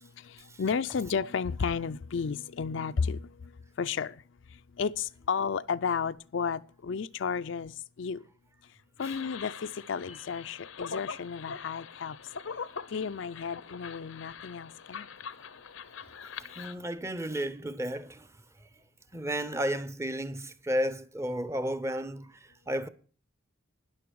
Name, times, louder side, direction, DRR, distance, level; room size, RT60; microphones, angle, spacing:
voice 1, 0.0-3.5 3.8-4.2 4.5-8.2 9.0-12.2 12.9-15.1, left 6 dB, 65° left, 0.4 m, -33 dB
sound 1, 9.0-16.7, left 6 dB, 85° left, 0.8 m, -43 dB
voice 2, 16.6-18.3 19.1-22.3 22.7-22.9, equal, 15° right, 0.6 m, -32 dB
13.0 x 9.9 x 4.7 m
head